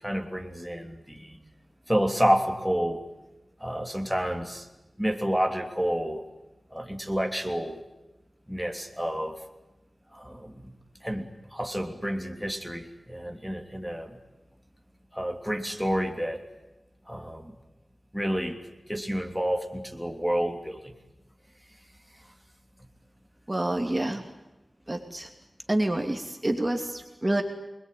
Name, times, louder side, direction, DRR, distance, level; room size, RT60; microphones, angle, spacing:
voice 1, 0.0-1.4 1.9-3.0 3.6-4.7 5.0-6.2 6.7-7.8 8.5-9.3 10.1-10.7 11.0-14.2 15.1-16.4 17.1-17.5 18.1-18.6 18.9-20.9, equal, ahead, 3 dB, 3.3 m, -29 dB
voice 2, 23.5-24.2 24.9-25.3 25.7-27.4, right 1 dB, 25° right, 4 dB, 2.8 m, -27 dB
27.5 x 22.0 x 9.4 m, 1.0 s
wide cardioid pair, 85°, 0 cm